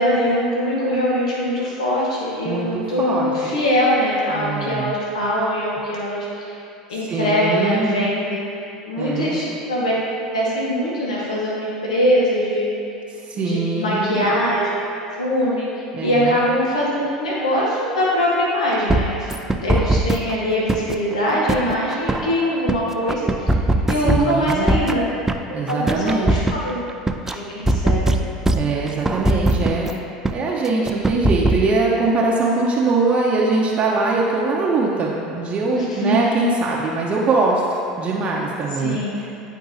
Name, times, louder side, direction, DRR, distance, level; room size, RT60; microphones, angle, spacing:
voice 1, 0.0-6.5 6.9-8.5 8.9-9.9 10.3-12.7 13.3-14.8 15.2-15.7 16.0-23.5 23.9-25.0 25.7-26.8 27.3-28.3 35.7-36.2 38.8-39.3, equal, 90° left, -5 dB, 1.0 m, -22 dB
voice 2, 2.4-3.6 4.3-4.9 7.0-8.0 9.0-9.4 13.3-14.2 15.9-16.4 24.0-24.7 25.5-26.3 28.5-29.9 30.3-39.5, right 3 dB, 35° right, -3 dB, 0.7 m, -22 dB
sound 1, 18.9-20.3 20.7-22.8 23.1-25.4 25.7-27.4 27.7-29.9 30.3-30.4 30.7-31.7, right 2 dB, 10° right, 0.4 m, -20 dB
9.3 x 4.5 x 2.7 m, 2.6 s
hypercardioid pair, 80°, 3 cm